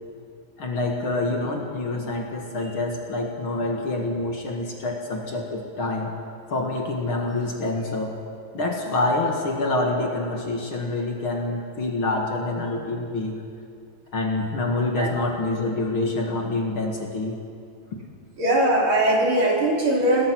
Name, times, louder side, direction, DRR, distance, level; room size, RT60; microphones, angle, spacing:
voice 1, 0.6-6.1 6.5-8.2 8.5-13.4 14.1-17.4, left 2 dB, 50° left, 1 dB, 2.5 m, -26 dB
voice 2, 18.4-20.3, right 1 dB, 45° right, -1 dB, 3.7 m, -20 dB
26.5 x 19.0 x 6.1 m, 2.3 s
omnidirectional pair, 3.3 m